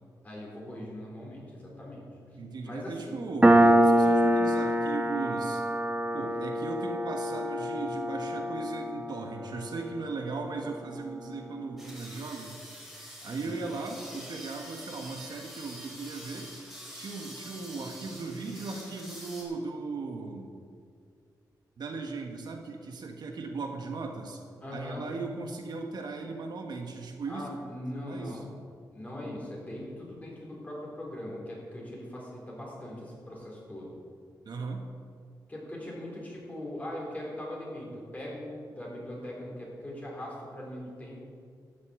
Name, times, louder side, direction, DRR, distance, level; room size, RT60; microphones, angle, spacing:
voice 1, 0.2-2.1 2.6-3.2 13.3-13.6 24.6-25.1 27.3-28.5 28.9-34.0 35.5-41.2, left 1 dB, 20° left, -3 dB, 4.1 m, -40 dB
voice 2, 2.4-5.6 6.1-12.6 13.2-16.5 16.9-20.5 21.8-24.4 24.7-27.5 28.0-28.4 34.4-34.8, right 3 dB, 65° right, 3 dB, 1.4 m, -37 dB
Piano, 3.4-10.6, right 1 dB, 15° right, 1.1 m, -25 dB
sound 1, 11.8-19.4, equal, ahead, 3.8 m, -46 dB
12.5 x 7.0 x 8.2 m, 2.2 s
wide cardioid pair, 125°, 8 cm